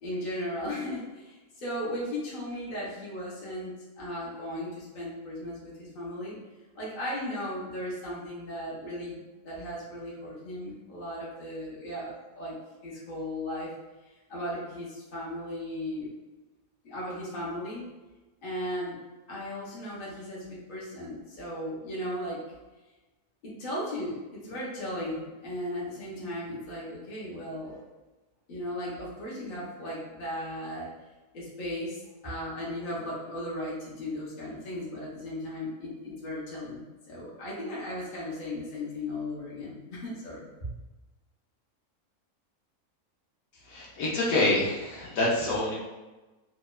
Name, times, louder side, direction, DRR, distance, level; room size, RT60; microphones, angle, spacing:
voice 1, 0.0-6.4 6.7-9.2 9.4-12.5 12.8-13.7 14.0-16.1 16.8-17.8 18.4-19.0 19.3-22.4 23.4-27.8 28.5-30.9 31.3-40.4, left 1 dB, 50° left, -6 dB, 0.6 m, -36 dB
voice 2, 43.7-45.8, left 2 dB, 70° left, -5 dB, 1.0 m, -26 dB
2.8 x 2.1 x 2.2 m, 1.1 s
omnidirectional pair, 1.7 m